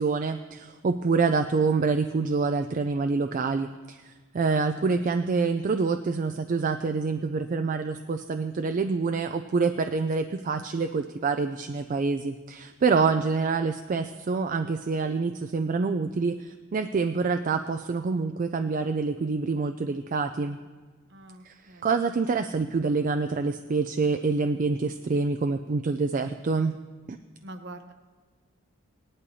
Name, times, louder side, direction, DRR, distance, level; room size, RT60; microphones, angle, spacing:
voice 1, 0.0-20.6 21.4-21.6 21.8-26.8 27.1-27.2, right 4 dB, 40° right, 8 dB, 0.3 m, -26 dB
voice 2, 21.1-21.9 27.4-27.9, right 2 dB, 55° right, 7 dB, 0.9 m, -44 dB
18.5 x 11.0 x 2.8 m, 1.4 s
head